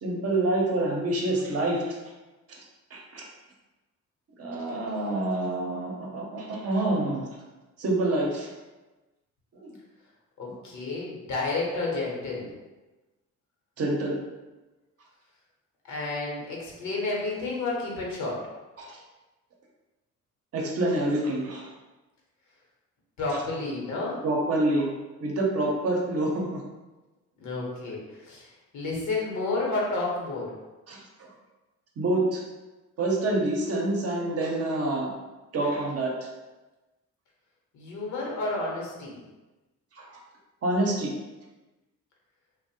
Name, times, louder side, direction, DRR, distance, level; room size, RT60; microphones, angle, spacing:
voice 1, 0.0-2.0 2.5-2.6 2.9-3.2 4.4-7.3 7.8-8.5 9.5-9.8 13.8-14.2 18.8-19.0 20.5-21.7 23.3-23.4 24.2-24.9 25.2-26.6 30.9-31.3 32.0-32.4 33.0-35.1 35.5-36.3 40.0-40.1 40.6-41.1, right 2 dB, 50° right, -1 dB, 0.6 m, -27 dB
voice 2, 10.4-12.5 15.9-18.4 23.2-24.2 27.4-28.0 28.3-28.5 28.7-30.5 37.7-39.2, left 3 dB, 70° left, -3 dB, 0.9 m, -30 dB
2.5 x 2.0 x 2.7 m, 1.1 s
cardioid pair, 90°, 30 cm